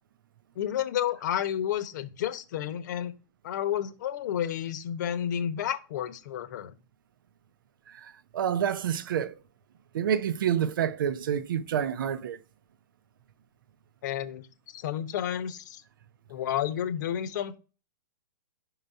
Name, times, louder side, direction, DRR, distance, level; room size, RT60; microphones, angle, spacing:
voice 1, 0.6-3.1 3.4-6.8 14.0-15.8 16.3-17.6, left 10 dB, 55° left, 1.0 m, -31 dB
voice 2, 7.9-9.3 9.9-12.4, right 9 dB, 70° right, 0.7 m, -28 dB
5.5 x 4.0 x 5.5 m
hypercardioid pair, 145°, 11 cm